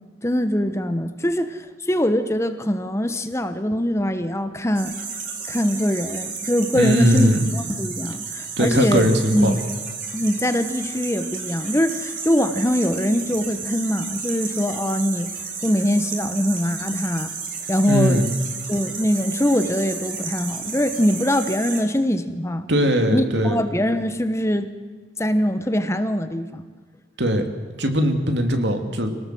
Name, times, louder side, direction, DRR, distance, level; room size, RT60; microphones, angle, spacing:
voice 1, 0.2-4.9 5.5-9.6 10.1-15.3 15.6-17.3 17.7-18.3 18.7-22.7 23.1-24.7 25.2-26.6, equal, 15° left, 10 dB, 1.1 m, -22 dB
sound 1, 4.7-21.8, right 5 dB, 50° right, 4.7 m, -32 dB
voice 2, 6.7-7.4 8.6-9.6 17.8-18.3 22.7-23.6 27.2-27.4 27.8-29.1, equal, 70° right, 6 dB, 2.9 m, -20 dB
26.0 x 19.0 x 7.8 m, 1.5 s
head